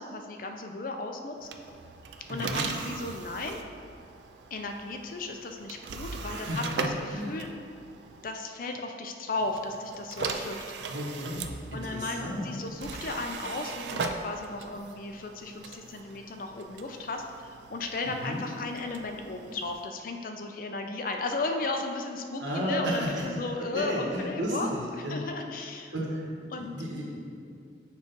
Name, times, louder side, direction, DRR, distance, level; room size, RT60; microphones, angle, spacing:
voice 1, 0.0-1.5 2.3-3.6 4.5-7.5 8.2-10.9 11.7-25.9 26.5-26.7, left 2 dB, 50° left, 4 dB, 0.4 m, -35 dB
sound 1, 1.4-8.3 9.4-19.9, right 4 dB, 70° right, 0.4 m, -39 dB
voice 2, 2.3-2.6 6.3-7.4 10.9-12.5 18.2-18.4 22.4-23.2 23.6-25.2 25.9-26.3 26.6-27.5, equal, 85° right, -4 dB, 1.4 m, -33 dB
7.3 x 2.5 x 5.4 m, 2.3 s
head